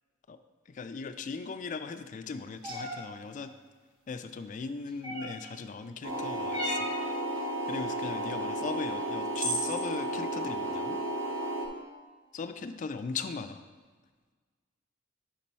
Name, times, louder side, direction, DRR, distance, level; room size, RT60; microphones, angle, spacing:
voice 1, 0.7-3.5 4.1-6.9 7.7-11.0 12.3-13.6, left 4 dB, 40° left, 10 dB, 0.3 m, -38 dB
sound 1, 2.6-3.0 5.0-5.5 6.5-7.0 8.7-8.8 9.3-9.8, equal, 45° right, 1.3 m, -33 dB
sound 2, 6.0-11.7, right 1 dB, 75° right, 1.0 m, -33 dB
5.4 x 5.2 x 4.2 m, 1.4 s
head